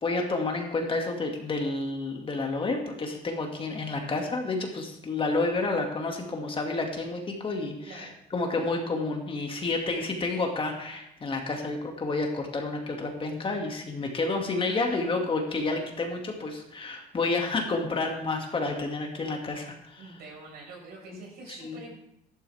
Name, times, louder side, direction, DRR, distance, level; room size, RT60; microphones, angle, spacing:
voice 1, 0.0-20.0 21.1-21.2 21.6-21.8, left 3 dB, 30° left, 2 dB, 2.2 m, -30 dB
voice 2, 20.0-22.0, right 3 dB, 70° right, -1 dB, 5.3 m, -45 dB
13.5 x 12.0 x 3.5 m, 0.80 s
cardioid pair, 110°, 17 cm